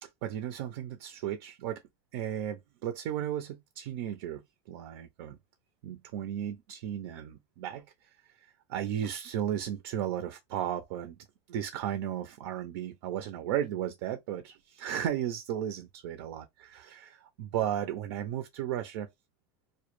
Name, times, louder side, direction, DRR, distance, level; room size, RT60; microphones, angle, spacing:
voice 1, 0.0-1.8 2.1-4.4 4.7-5.4 5.8-7.9 8.7-11.2 11.5-19.1, right 10 dB, 75° right, 0.4 m, -35 dB
2.1 x 2.0 x 3.0 m
supercardioid pair, 130°, 13 cm